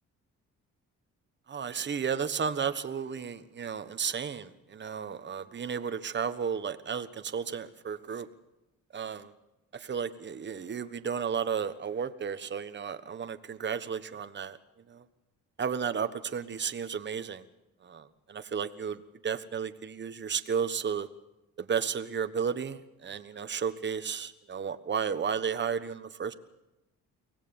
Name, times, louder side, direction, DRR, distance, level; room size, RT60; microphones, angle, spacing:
voice 1, 1.5-8.3 8.9-9.3 9.7-14.6 14.9-15.0 15.6-17.4 17.9-21.1 21.6-26.3, right 7 dB, 35° right, 10 dB, 1.3 m, -33 dB
24.5 x 17.5 x 7.1 m, 0.96 s
cardioid pair, 90°, 30 cm